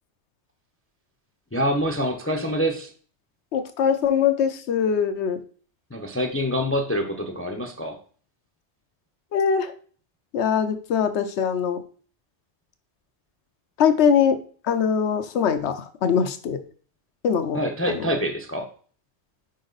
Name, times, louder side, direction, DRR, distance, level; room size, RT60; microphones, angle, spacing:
voice 1, 1.5-2.9 5.9-8.0 17.5-18.7, equal, 15° left, 2 dB, 0.6 m, -26 dB
voice 2, 3.5-5.4 9.3-9.7 10.3-11.8 13.8-14.4 14.6-16.6 17.2-17.6 17.9-18.1, left 7 dB, 75° left, 10 dB, 1.0 m, -22 dB
5.3 x 4.9 x 3.9 m, 0.43 s
omnidirectional pair, 1.2 m